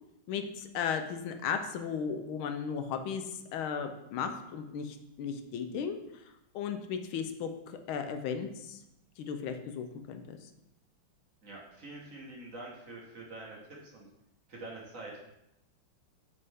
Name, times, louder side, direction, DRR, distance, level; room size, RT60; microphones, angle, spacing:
voice 1, 0.3-3.2 3.5-6.0 6.5-8.8 9.2-10.5, left 6 dB, 80° left, 7 dB, 1.5 m, -35 dB
voice 2, 11.4-14.1 14.5-15.2, right 2 dB, 45° right, -3 dB, 1.4 m, -45 dB
8.1 x 5.5 x 3.4 m, 0.87 s
omnidirectional pair, 2.3 m